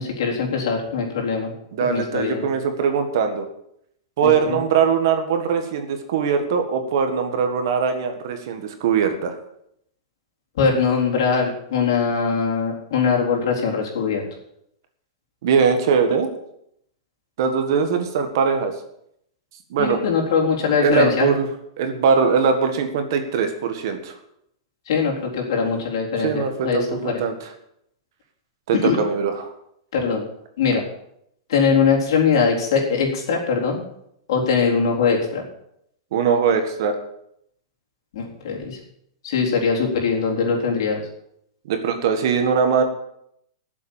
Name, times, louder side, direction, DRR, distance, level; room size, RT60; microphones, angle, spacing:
voice 1, 0.0-1.5 1.8-2.4 4.2-4.6 10.6-14.2 19.8-21.3 24.9-27.2 28.7-29.0 29.9-30.2 30.6-30.8 31.5-33.8 34.3-35.4 38.1-38.8 39.2-41.0, left 5 dB, 55° left, -2 dB, 3.9 m, -21 dB
voice 2, 1.7-3.5 4.2-9.4 15.4-16.3 17.4-18.7 19.7-20.0 20.8-21.5 21.8-24.1 26.2-27.5 28.7-29.5 36.1-36.9 41.7-42.8, right 6 dB, 45° right, 6 dB, 1.6 m, -21 dB
13.0 x 7.5 x 7.3 m, 0.74 s
supercardioid pair, 180°, 3 cm